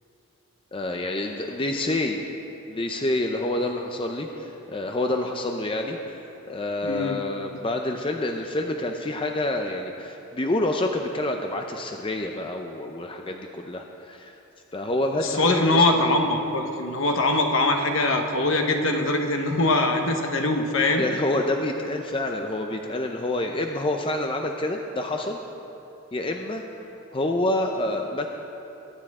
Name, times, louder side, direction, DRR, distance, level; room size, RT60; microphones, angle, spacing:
voice 1, 0.7-2.2 2.7-14.3 14.7-16.2 21.0-25.4 26.1-26.6 27.1-28.3, left 1 dB, 25° left, 3 dB, 0.6 m, -28 dB
voice 2, 6.8-7.2 15.2-21.0, left 2 dB, 65° left, 3 dB, 1.3 m, -22 dB
22.5 x 10.0 x 3.7 m, 3.0 s
head